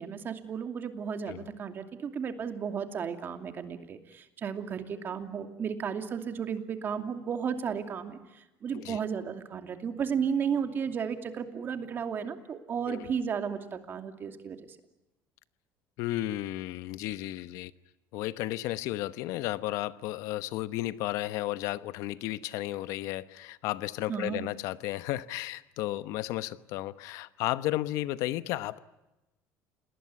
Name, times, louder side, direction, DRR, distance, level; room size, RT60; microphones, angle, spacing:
voice 1, 0.0-14.8 24.1-24.5, right 7 dB, 40° right, 7 dB, 2.6 m, -34 dB
voice 2, 16.0-17.7 18.1-28.8, left 16 dB, 75° left, 15 dB, 1.0 m, -33 dB
28.5 x 20.0 x 9.7 m, 0.97 s
cardioid pair, 120°, 6 cm